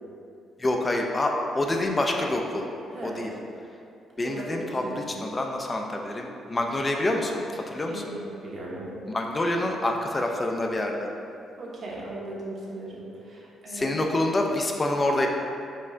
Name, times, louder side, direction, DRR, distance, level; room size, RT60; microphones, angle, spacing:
voice 1, 0.6-2.7 3.0-3.3 4.2-8.0 9.1-11.1 13.7-15.3, left 1 dB, 25° left, 2 dB, 0.4 m, -27 dB
voice 2, 2.9-3.5 4.2-5.0 7.9-9.0 11.6-14.0, right 1 dB, 55° right, -5 dB, 1.0 m, -38 dB
4.4 x 2.4 x 4.3 m, 2.6 s
cardioid pair, 90°, 0 cm